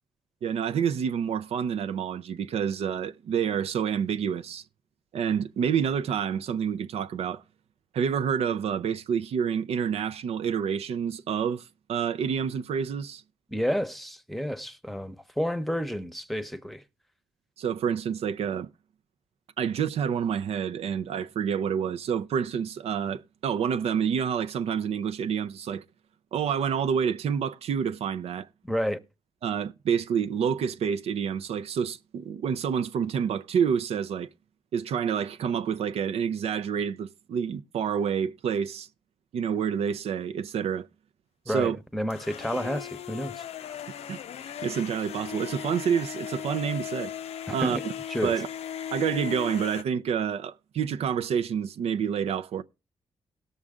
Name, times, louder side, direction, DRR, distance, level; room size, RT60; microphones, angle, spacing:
voice 1, 0.4-4.6 5.1-7.4 7.9-13.2 17.6-18.7 19.6-25.8 26.3-28.5 29.4-34.3 34.7-38.9 39.3-40.9 41.5-41.8 44.1-47.1 47.5-47.9 48.2-48.5 48.9-52.6, right 7 dB, 80° right, 0.5 m, -28 dB
voice 2, 13.5-16.8 28.7-29.0 41.5-43.4 47.5-47.8 48.1-48.4, equal, ahead, 0.9 m, -30 dB
sound 1, 42.1-49.8, left 9 dB, 80° left, 0.5 m, -37 dB
17.5 x 6.4 x 3.6 m
cardioid pair, 75°, 11 cm